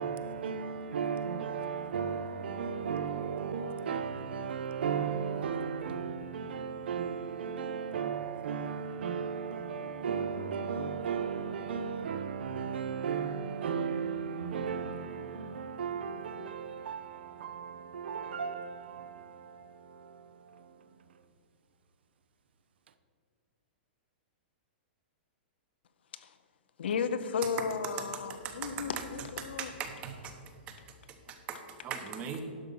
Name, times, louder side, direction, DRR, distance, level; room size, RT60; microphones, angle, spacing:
voice 1, 0.0-21.2, right 6 dB, 80° right, 0.8 m, -35 dB
voice 2, 26.8-29.7, left 6 dB, 90° left, 0.7 m, -34 dB
voice 3, 28.4-28.9 29.4-30.3 30.7-30.8 31.3-32.4, right 7 dB, 20° right, 0.9 m, -40 dB
11.5 x 6.2 x 5.5 m
hypercardioid pair, 175°, 6 cm